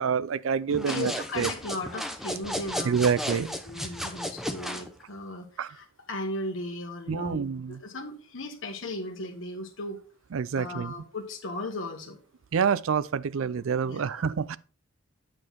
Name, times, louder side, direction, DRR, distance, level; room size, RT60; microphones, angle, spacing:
voice 1, 0.0-1.5 2.8-3.5 5.6-5.8 7.1-7.8 10.3-10.9 12.5-14.6, right 6 dB, 80° right, 0.4 m, -27 dB
voice 2, 0.7-3.0 3.4-10.0 10.6-12.2 13.8-14.3, left 2 dB, 70° left, 1.4 m, -37 dB
sound 1, 0.7-4.9, equal, ahead, 0.7 m, -34 dB
8.9 x 6.4 x 4.0 m
head